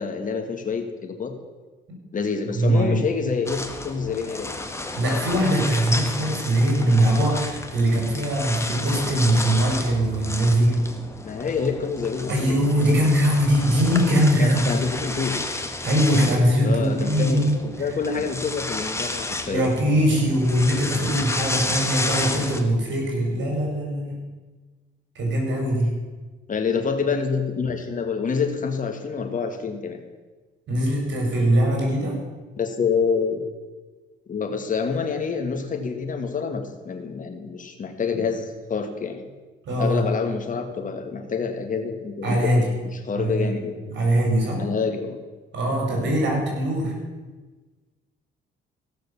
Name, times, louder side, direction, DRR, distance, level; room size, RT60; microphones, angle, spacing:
voice 1, 0.0-1.3 2.1-4.7 11.2-13.0 14.4-15.4 16.6-19.7 26.5-30.0 32.6-33.4 34.3-39.2 39.8-42.5 42.8-43.8 44.6-45.2, left 5 dB, 40° left, 5 dB, 1.8 m, -27 dB
voice 2, 2.5-3.0 4.9-10.8 12.3-14.8 15.8-17.6 19.5-24.2 25.1-25.9 30.7-32.2 39.6-40.0 42.2-42.7 43.1-43.5 43.9-44.6 45.5-46.9, right 1 dB, 65° right, 0 dB, 5.2 m, -21 dB
sound 1, 3.5-22.6, left 2 dB, 15° left, 1.3 m, -32 dB
15.5 x 6.5 x 7.0 m, 1.3 s
cardioid pair, 90°, 20 cm